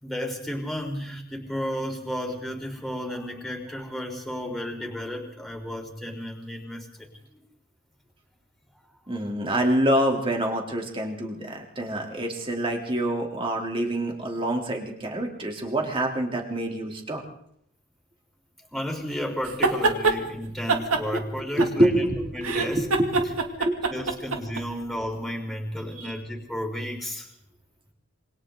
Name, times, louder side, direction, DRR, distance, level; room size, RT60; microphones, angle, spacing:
voice 1, 0.0-7.4 18.7-22.0 22.3-22.9 23.9-27.3, equal, ahead, 0 dB, 3.9 m, -33 dB
voice 2, 9.1-17.2 21.6-23.4 23.6-23.7 25.9-26.1, right 1 dB, 25° right, 1 dB, 3.3 m, -26 dB
sound 1, 19.4-20.2 20.7-22.1 22.4-24.6, right 3 dB, 85° right, 2.5 m, -24 dB
27.5 x 24.5 x 3.9 m, 0.69 s
head